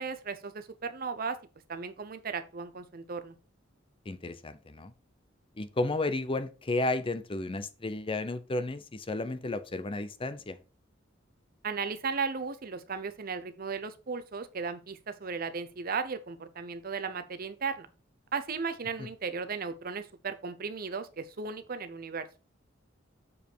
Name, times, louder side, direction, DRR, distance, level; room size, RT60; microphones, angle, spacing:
voice 1, 0.0-1.4 1.7-3.3 11.6-17.9 18.3-22.3, right 5 dB, 50° right, 0.7 m, -36 dB
voice 2, 4.1-4.9 5.6-10.6 19.0-19.1, left 2 dB, 30° left, 0.6 m, -33 dB
7.1 x 5.2 x 4.4 m
head